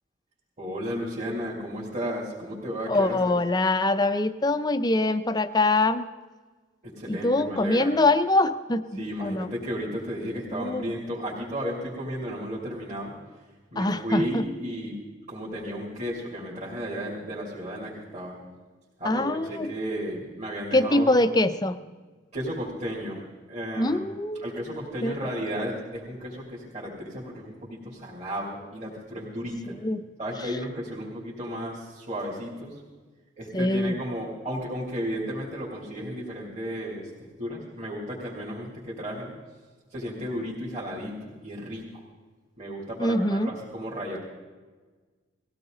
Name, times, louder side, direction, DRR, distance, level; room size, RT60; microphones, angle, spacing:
voice 1, 0.6-3.4 6.8-7.9 9.0-13.1 13.7-14.9 15.3-18.4 19.0-21.2 22.3-23.2 23.5-24.0 24.4-29.8 30.2-32.8 33.4-39.3 39.9-42.0 42.6-44.2, equal, 35° right, -7 dB, 3.2 m, -33 dB
voice 2, 2.9-6.1 7.1-9.5 10.5-10.9 13.8-14.4 19.0-19.7 20.7-21.8 23.8-24.6 25.0-25.3 29.8-30.0 33.5-34.0 43.0-43.5, left 2 dB, 20° left, 11 dB, 0.6 m, -24 dB
19.0 x 16.5 x 4.0 m, 1.4 s
head